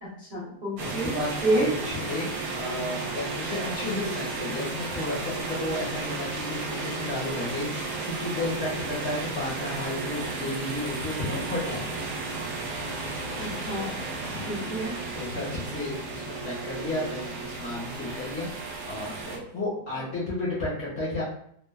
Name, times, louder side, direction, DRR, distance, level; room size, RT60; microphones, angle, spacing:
voice 1, 0.0-1.2 1.4-1.7 13.4-14.0 14.5-15.0 19.2-19.4, right 1 dB, 50° right, -9 dB, 0.6 m, -29 dB
voice 2, 0.8-2.3 2.5-12.0 14.2-14.7 15.1-21.2, left 2 dB, 50° left, -7 dB, 0.8 m, -33 dB
sound 1, 0.8-19.4, right 3 dB, 75° right, 1.1 m, -34 dB
2.8 x 2.2 x 2.2 m, 0.68 s
omnidirectional pair, 1.8 m